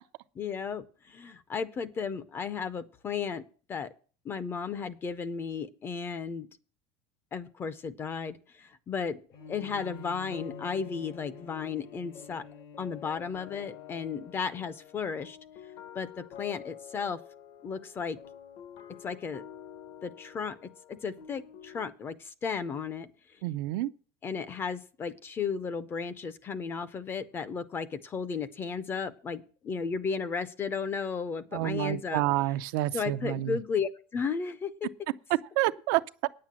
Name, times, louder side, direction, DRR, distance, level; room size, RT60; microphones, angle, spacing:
voice 1, 0.4-3.4 3.7-3.9 4.2-6.5 7.3-9.2 9.5-12.4 12.8-15.4 15.9-17.2 17.6-18.2 18.9-19.4 20.0-23.1 24.2-32.2 32.9-34.9, left 6 dB, 20° left, 0.5 m, -34 dB
Bowed string instrument, 9.3-15.0, left 3 dB, 75° left, 4.5 m, -49 dB
sound 1, 9.4-21.8, left 9 dB, 50° left, 0.9 m, -49 dB
voice 2, 23.4-23.9 31.5-33.6 35.6-36.3, right 16 dB, 65° right, 0.5 m, -29 dB
9.5 x 7.6 x 7.4 m
cardioid pair, 170°, 12 cm